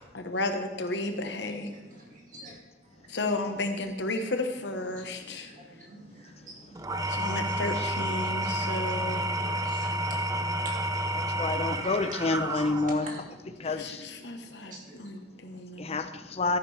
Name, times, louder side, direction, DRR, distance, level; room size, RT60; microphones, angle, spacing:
voice 1, 0.1-1.7 3.1-5.5 7.1-9.3 13.6-16.0, left 2 dB, 70° left, 5 dB, 1.2 m, -33 dB
voice 2, 1.7-2.6 2.8-3.1 4.9-7.2 7.5-7.7 8.0-11.5 12.0-16.0, right 1 dB, 45° right, -2 dB, 2.3 m, -49 dB
Engine / Tools, 6.7-13.2, right 1 dB, 20° right, 0.6 m, -30 dB
voice 3, 11.4-13.1 13.6-14.0 15.8-16.6, left 3 dB, 35° left, 10 dB, 0.6 m, -28 dB
13.0 x 10.0 x 3.4 m, 1.1 s
head